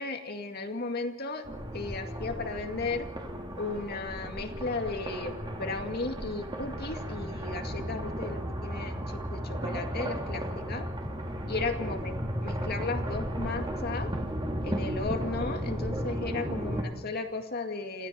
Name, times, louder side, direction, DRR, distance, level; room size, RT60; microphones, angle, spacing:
voice 1, 0.0-1.4 1.7-3.1 3.6-10.9 11.5-14.1 14.6-18.1, left 3 dB, 50° left, 5 dB, 2.2 m, -35 dB
sound 1, 1.4-16.8, equal, 25° right, 2.7 m, -34 dB
27.0 x 16.5 x 5.9 m, 1.1 s
head